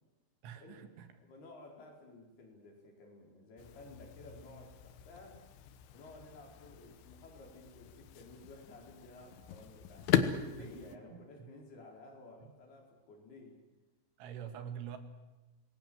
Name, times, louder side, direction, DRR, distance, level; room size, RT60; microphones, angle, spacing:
voice 1, 0.4-1.1 10.6-11.5 14.2-15.0, right 9 dB, 90° right, 8 dB, 4.4 m, -46 dB
voice 2, 1.2-5.4 5.9-13.6, left 2 dB, 55° left, 1 dB, 6.3 m, -54 dB
sound 1, 3.6-11.0, left 9 dB, 85° left, 3.7 m, -38 dB
27.0 x 20.5 x 7.8 m, 1.1 s
omnidirectional pair, 5.4 m